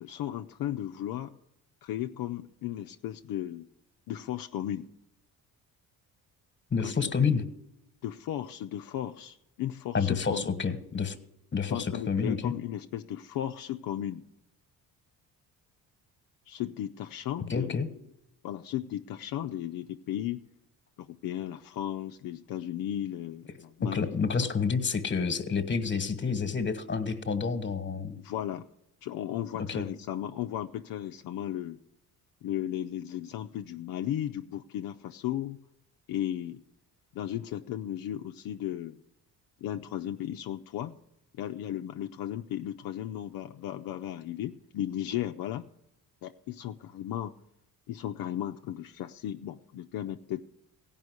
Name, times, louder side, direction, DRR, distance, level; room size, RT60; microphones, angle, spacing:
voice 1, 0.0-1.3 1.8-3.7 4.1-4.9 6.8-7.0 8.0-10.6 11.7-14.2 16.5-17.8 18.4-20.4 21.0-24.1 24.4-24.5 28.2-28.6 29.0-31.8 32.4-35.6 36.1-36.6 37.1-39.0 39.6-41.0 41.4-45.7 46.2-47.3 47.9-50.4, left 11 dB, 65° left, 5 dB, 0.6 m, -35 dB
voice 2, 6.7-7.4 9.9-11.2 11.5-12.5 17.5-17.9 23.8-28.2 29.7-29.8, left 5 dB, 30° left, 11 dB, 1.4 m, -29 dB
16.0 x 5.5 x 9.6 m, 0.84 s
supercardioid pair, 80°, 38 cm